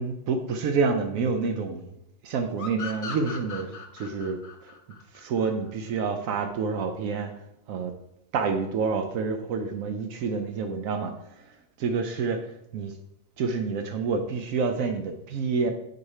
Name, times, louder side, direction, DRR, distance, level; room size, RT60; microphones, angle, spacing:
voice 1, 0.0-1.9 2.2-4.7 5.1-7.3 7.7-7.9 8.3-11.4 11.8-12.5 12.7-12.9 13.4-15.7, right 4 dB, 85° right, 6 dB, 1.0 m, -28 dB
sound 1, 2.6-6.0, left 5 dB, 45° left, 0.4 m, -39 dB
4.8 x 4.6 x 4.2 m, 0.81 s
omnidirectional pair, 1.4 m